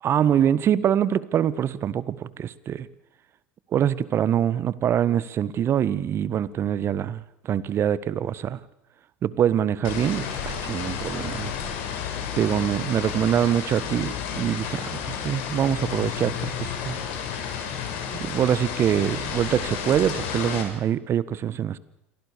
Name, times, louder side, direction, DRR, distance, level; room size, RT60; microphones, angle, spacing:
voice 1, 0.0-2.9 3.7-8.6 9.2-11.5 12.4-17.0 18.1-21.8, right 9 dB, 40° right, 17 dB, 1.5 m, -24 dB
sound 1, 9.8-20.6, left 7 dB, 65° left, 7.3 m, -31 dB
28.0 x 23.0 x 6.9 m, 0.86 s
hypercardioid pair, 80°, 6 cm